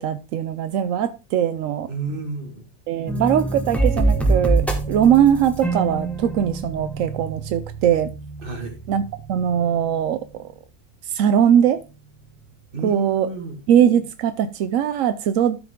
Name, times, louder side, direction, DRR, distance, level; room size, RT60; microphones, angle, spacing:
voice 1, 0.0-1.9 2.9-8.1 8.9-10.5 11.0-11.8 12.8-13.3 13.7-15.6, right 9 dB, 75° right, 0.7 m, -20 dB
voice 2, 1.9-2.7 8.4-8.8 12.7-13.6, right 3 dB, 30° right, 2.0 m, -30 dB
sound 1, 3.1-9.9, right 3 dB, ahead, 1.2 m, -25 dB
13.0 x 5.0 x 3.7 m
omnidirectional pair, 1.9 m